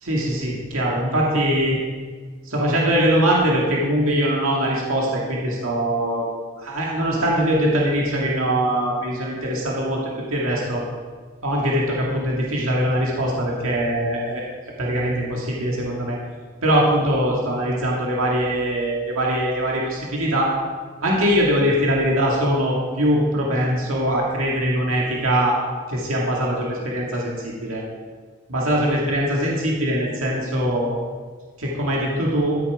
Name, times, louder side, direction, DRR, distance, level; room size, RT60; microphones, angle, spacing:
voice 1, 0.0-1.8 2.5-6.2 6.6-10.0 10.3-10.8 11.4-14.5 14.8-16.2 16.6-20.5 21.0-25.6 25.9-27.8 28.5-30.9 31.6-32.6, equal, 85° right, -3 dB, 2.0 m, -22 dB
14.0 x 7.2 x 4.9 m, 1.5 s
head